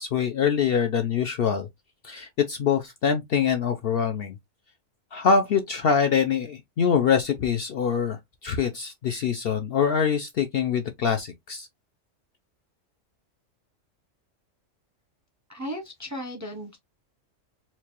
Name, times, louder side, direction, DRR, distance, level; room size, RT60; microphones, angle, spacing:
voice 1, 0.0-1.7 2.0-4.4 5.1-11.7, left 6 dB, 60° left, 0.6 m, -24 dB
voice 2, 15.5-16.8, equal, 20° right, 0.5 m, -35 dB
4.4 x 2.4 x 2.9 m
omnidirectional pair, 1.4 m